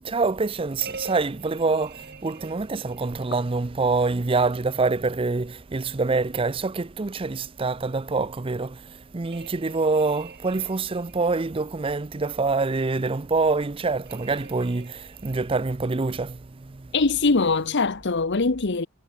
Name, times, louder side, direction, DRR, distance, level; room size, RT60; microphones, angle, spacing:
voice 1, 0.0-16.9, right 3 dB, 25° right, 0.5 m, -26 dB
sound 1, 0.8-3.2 9.3-11.4 14.1-15.6, right 4 dB, 50° right, 2.8 m, -44 dB
voice 2, 16.9-18.9, left 3 dB, 50° left, 0.9 m, -22 dB
head